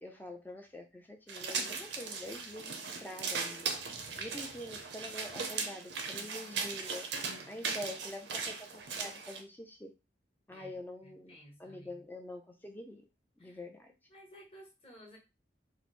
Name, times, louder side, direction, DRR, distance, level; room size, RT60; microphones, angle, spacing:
voice 1, 0.0-3.7 4.1-7.1 7.5-9.9 10.5-13.1 13.4-13.9, left 1 dB, 10° left, 4 dB, 0.4 m, -46 dB
sound 1, 1.3-9.4, right 5 dB, 80° right, 0.6 m, -38 dB
voice 2, 10.5-12.0 13.4-13.6 14.1-15.2, equal, 30° left, -2 dB, 1.2 m, -56 dB
3.0 x 2.0 x 4.1 m, 0.26 s
head